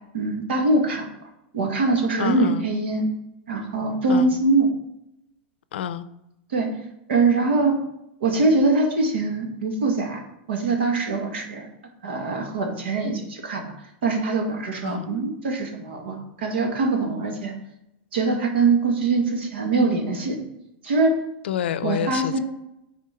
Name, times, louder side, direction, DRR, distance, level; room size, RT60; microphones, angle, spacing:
voice 1, 0.1-1.1 1.5-3.1 3.5-4.7 6.5-6.7 7.1-7.8 8.2-10.2 10.5-11.7 12.0-13.6 14.0-17.5 18.1-20.4 20.8-21.1 21.8-22.4, right 3 dB, 85° right, 3 dB, 1.7 m, -23 dB
voice 2, 2.2-2.7 4.1-4.3 5.7-6.1 14.8-15.1 21.4-22.4, left 10 dB, 90° left, 15 dB, 0.5 m, -28 dB
8.5 x 4.3 x 4.3 m, 0.85 s
supercardioid pair, 165°, 6 cm